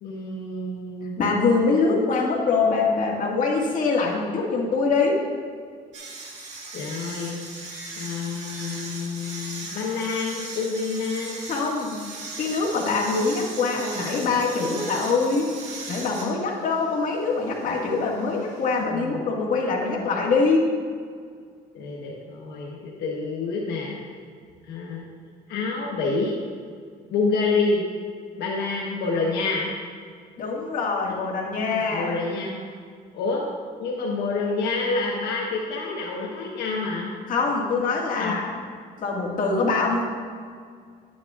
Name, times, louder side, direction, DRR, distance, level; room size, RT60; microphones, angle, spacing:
voice 1, 0.0-1.1 6.7-7.4 8.0-11.3 18.8-19.2 21.7-24.0 24.7-25.1 25.5-26.4 27.1-27.8 28.4-29.7 31.9-32.6 33.1-33.4 33.8-37.1 38.2-38.4, left 3 dB, 80° left, -2 dB, 1.2 m, -28 dB
voice 2, 1.2-5.2 11.5-12.0 12.4-15.5 15.9-20.7 30.4-32.2 37.3-38.6 39.0-40.0, left 4 dB, 50° left, -2 dB, 1.9 m, -24 dB
sound 1, 5.9-18.8, right 3 dB, 45° right, 1.9 m, -39 dB
10.5 x 10.0 x 2.5 m, 2.1 s
cardioid pair, 110°, 17 cm